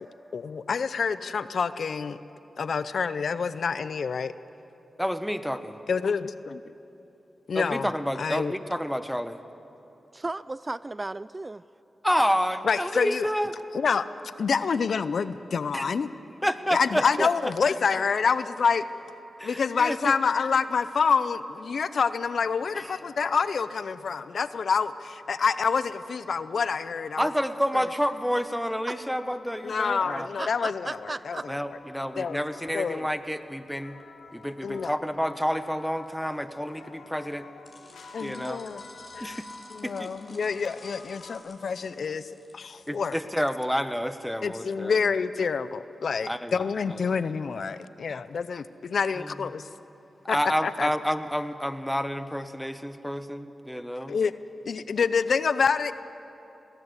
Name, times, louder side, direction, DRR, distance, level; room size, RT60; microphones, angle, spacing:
voice 1, 0.3-2.2 2.6-4.3 5.9-6.7 7.5-7.9 8.2-8.6 12.6-13.3 13.7-14.1 14.4-16.1 16.7-27.3 27.7-27.8 29.6-31.5 32.2-32.4 32.7-33.1 34.6-35.0 38.1-38.8 39.1-39.4 39.7-43.1 44.4-49.7 50.3-50.4 50.6-50.9 54.1-54.3 54.7-55.9, left 5 dB, 70° left, 14 dB, 0.6 m, -27 dB
voice 2, 5.0-5.8 7.5-9.4 12.0-13.5 15.7-15.9 16.4-17.5 19.4-20.1 22.8-23.0 27.2-30.3 31.5-34.0 34.3-37.5 38.2-38.6 39.2-39.5 39.8-40.1 42.9-45.0 46.2-46.5 46.9-47.0 49.2-49.3 50.3-54.2, equal, ahead, 10 dB, 1.3 m, -29 dB
voice 3, 10.1-11.6 28.9-29.0 30.1-31.4, right 2 dB, 35° right, 17 dB, 0.4 m, -35 dB
sound 1, 28.5-41.4, left 4 dB, 90° left, 1.4 m, -49 dB
sound 2, 37.6-43.7, left 2 dB, 50° left, 4.9 m, -53 dB
19.5 x 18.0 x 8.2 m, 3.0 s
cardioid pair, 45°, 0 cm